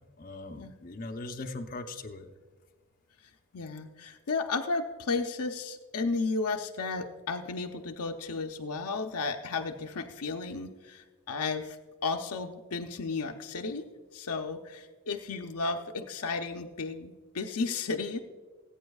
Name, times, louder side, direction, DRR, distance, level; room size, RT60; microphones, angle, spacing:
voice 1, 0.2-2.3, left 2 dB, 40° left, 5 dB, 0.7 m, -40 dB
voice 2, 3.5-13.9 14.1-18.2, left 4 dB, 90° left, 3 dB, 0.7 m, -33 dB
19.5 x 8.8 x 2.3 m, 1.4 s
head